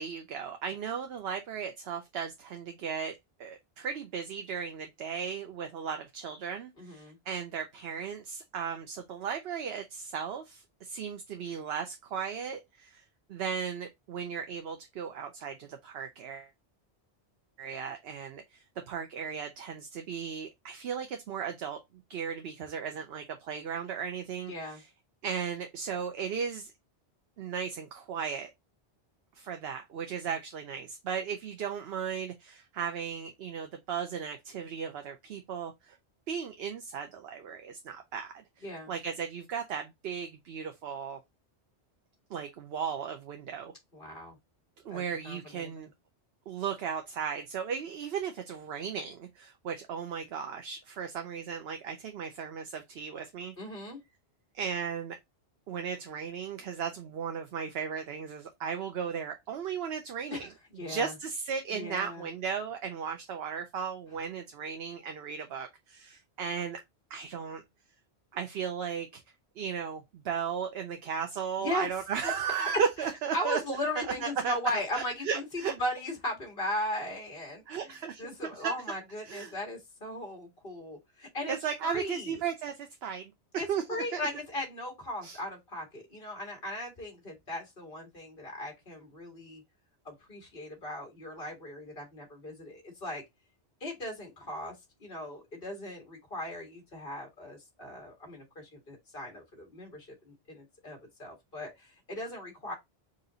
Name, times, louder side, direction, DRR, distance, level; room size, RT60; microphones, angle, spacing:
voice 1, 0.0-3.1 3.4-13.0 13.3-16.5 17.6-21.8 22.1-24.9 25.2-26.7 27.4-28.5 29.4-36.0 36.3-38.4 38.9-41.2 42.3-43.7 44.8-45.9 46.5-53.5 54.5-55.2 55.7-60.5 60.9-66.8 67.1-67.6 68.3-69.2 69.6-73.6 74.0-74.6 74.9-75.7 77.7-78.2 78.5-78.7 79.2-79.6 81.5-84.2 85.2-85.4, right 7 dB, 70° right, 0.9 m, -36 dB
voice 2, 6.8-7.2 24.5-24.8 38.6-38.9 43.9-44.4 44.9-45.9 53.6-54.0 60.3-60.5 60.8-61.1 61.7-62.3 71.6-71.9 72.6-72.7 73.3-81.6 81.8-82.4 83.6-89.6 90.1-93.2 93.8-94.7 95.0-102.7, left 1 dB, 55° left, 2.0 m, -38 dB
4.1 x 2.6 x 3.9 m
omnidirectional pair, 1.1 m